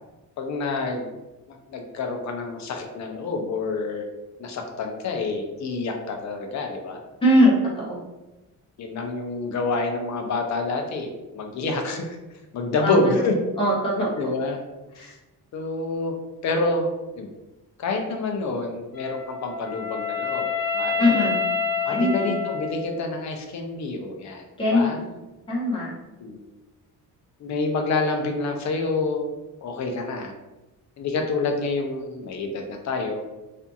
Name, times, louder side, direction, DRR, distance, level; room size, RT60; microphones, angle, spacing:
voice 1, 0.4-1.1 1.5-4.1 4.4-7.0 8.8-12.2 12.5-13.3 14.0-14.6 15.0-15.2 15.5-16.1 16.4-16.9 17.2-17.3 17.8-20.5 20.7-21.3 21.8-24.4 24.7-25.0 26.2-26.4 27.4-29.3 29.6-30.3 31.0-33.2, left 3 dB, 55° left, 3 dB, 0.5 m, -27 dB
voice 2, 7.2-8.0 12.8-13.2 13.6-14.3 15.0-15.1 21.0-21.4 21.9-22.3 24.6-25.1 25.5-25.9, equal, 15° left, -6 dB, 0.7 m, -21 dB
Wind instrument woodwind instrument, 18.9-23.1, left 5 dB, 75° left, 0.9 m, -28 dB
2.6 x 2.5 x 2.3 m, 1.0 s
cardioid pair, 145°, 35 cm